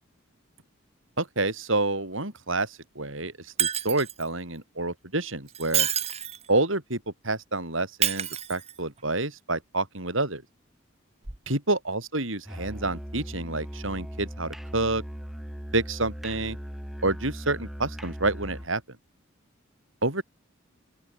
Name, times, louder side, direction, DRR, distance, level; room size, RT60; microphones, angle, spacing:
voice 1, 1.2-5.9 6.5-10.4 11.5-15.0 15.7-16.6 17.0-18.8 20.0-20.2, right 2 dB, 70° right, 7.6 m, -28 dB
Shatter, 3.6-4.3 5.5-6.5 8.0-9.0 11.2-11.4, right 10 dB, 30° right, 1.9 m, -28 dB
Musical instrument, 12.4-18.8, equal, ahead, 5.9 m, -39 dB
open air
head